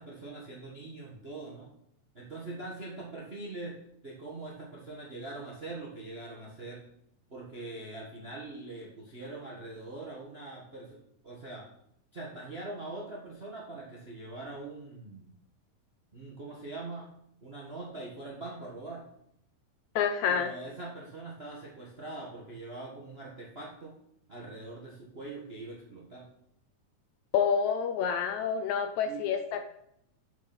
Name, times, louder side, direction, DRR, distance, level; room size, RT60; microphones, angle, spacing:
voice 1, 0.0-1.7 2.1-3.8 4.0-6.8 7.3-11.0 11.2-11.7 12.1-15.3 16.1-17.1 17.4-19.0 20.3-23.9 24.3-26.2 29.0-29.2, right 2 dB, 40° right, -2 dB, 0.8 m, -42 dB
voice 2, 20.0-20.5 27.3-29.7, left 7 dB, 75° left, 8 dB, 1.8 m, -28 dB
7.8 x 6.0 x 6.0 m, 0.73 s
omnidirectional pair, 3.8 m